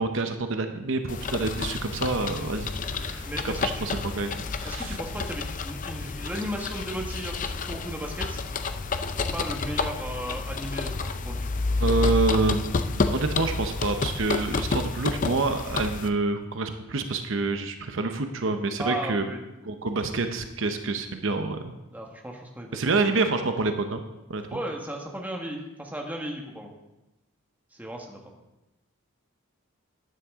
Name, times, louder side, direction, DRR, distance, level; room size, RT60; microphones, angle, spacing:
voice 1, 0.0-5.0 11.8-19.3 19.7-21.7 22.7-24.0 24.3-24.4, right 3 dB, 60° right, 6 dB, 0.8 m, -27 dB
sound 1, 1.1-16.1, left 3 dB, 40° left, 0.5 m, -30 dB
voice 2, 3.3-3.9 4.6-8.4 9.3-11.5 18.8-19.4 21.9-23.2 24.5-26.7 27.7-28.2, equal, 10° right, 1 dB, 1.3 m, -35 dB
12.5 x 10.0 x 3.6 m, 0.97 s
head